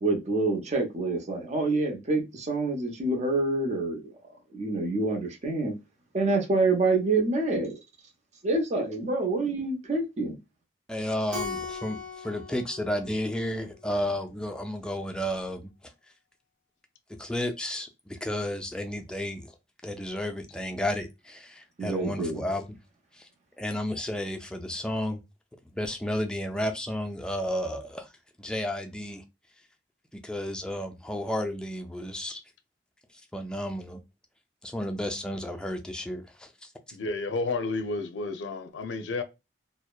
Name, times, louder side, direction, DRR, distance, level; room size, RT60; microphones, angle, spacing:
voice 1, 0.0-4.1 4.5-5.7 6.1-7.8 8.4-10.4 21.8-22.4, right 2 dB, 40° right, 0.7 m, -27 dB
voice 2, 10.9-15.9 17.1-19.5 19.8-22.8 23.1-23.3 23.6-25.2 25.7-28.1 28.4-29.2 30.1-32.4 33.3-34.0 34.6-36.5 36.9-37.0, left 1 dB, 5° left, 0.3 m, -32 dB
Keyboard (musical), 11.3-14.0, left 4 dB, 70° right, 1.0 m, -39 dB
voice 3, 36.9-39.2, left 3 dB, 85° left, 0.4 m, -31 dB
2.7 x 2.1 x 2.2 m
head